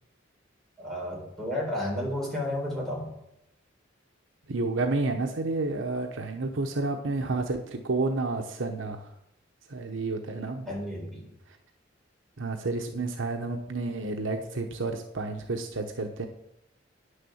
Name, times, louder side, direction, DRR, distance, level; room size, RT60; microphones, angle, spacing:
voice 1, 0.8-3.1 10.6-11.3, left 1 dB, ahead, -3 dB, 3.8 m, -32 dB
voice 2, 4.5-9.1 9.7-10.7 12.4-16.3, right 3 dB, 80° right, 4 dB, 0.9 m, -30 dB
9.8 x 6.7 x 7.1 m, 0.81 s
head